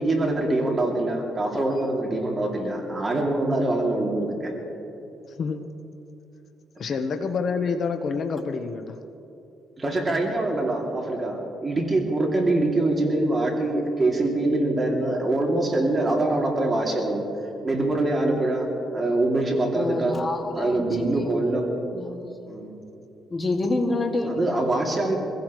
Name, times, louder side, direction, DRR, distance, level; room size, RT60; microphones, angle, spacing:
voice 1, 0.0-4.5 6.9-7.0 9.8-17.2 17.6-18.7 18.9-20.2 20.5-21.7 22.5-22.7 24.3-25.2, right 2 dB, 30° right, -1 dB, 2.6 m, -24 dB
voice 2, 6.8-8.9, left 5 dB, 55° left, 6 dB, 1.0 m, -27 dB
voice 3, 19.7-21.4 21.9-22.3 23.3-24.7, left 2 dB, 25° left, 2 dB, 2.1 m, -28 dB
25.0 x 16.0 x 3.1 m, 2.9 s
cardioid pair, 90°, 0 cm